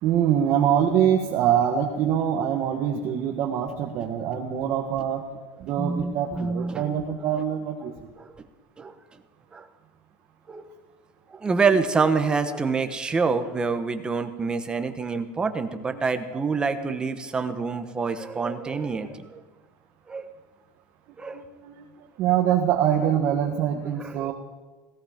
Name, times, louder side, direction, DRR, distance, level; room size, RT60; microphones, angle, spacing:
voice 1, 0.0-5.2 5.6-7.9 15.9-16.0 21.3-21.7 22.2-24.3, right 9 dB, 45° right, 1 dB, 1.4 m, -24 dB
voice 2, 5.8-6.9 8.2-8.4 8.8-8.9 9.5-9.7 10.5-10.7 11.3-19.4 20.1-20.3 21.2-21.4 24.0-24.3, right 4 dB, 15° right, 8 dB, 1.1 m, -26 dB
17.0 x 16.0 x 5.1 m, 1.3 s
cardioid pair, 155°, 6 cm